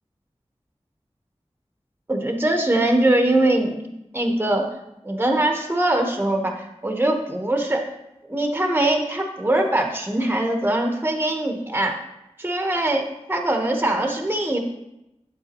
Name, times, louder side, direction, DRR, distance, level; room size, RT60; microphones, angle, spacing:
voice 1, 2.1-3.8 4.1-4.7 5.0-7.9 8.3-12.0 12.4-14.6, right 1 dB, 20° right, 3 dB, 1.0 m, -22 dB
8.7 x 8.0 x 3.0 m, 0.90 s
wide cardioid pair, 55°, 12 cm